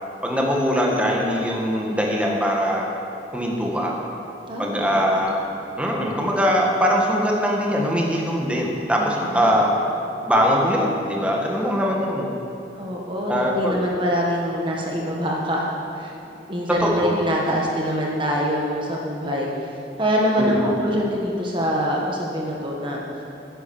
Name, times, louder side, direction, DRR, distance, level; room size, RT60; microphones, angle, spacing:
voice 1, 0.2-2.9 3.3-3.9 4.6-5.4 5.8-9.7 10.2-12.3 13.3-13.8 16.8-17.2 20.4-20.9, equal, 5° right, -2 dB, 1.6 m, -22 dB
voice 2, 4.5-5.3 9.0-9.6 12.8-16.1 16.5-19.5 20.0-23.0, equal, 30° right, -2 dB, 1.3 m, -25 dB
10.5 x 10.0 x 7.1 m, 2.8 s
head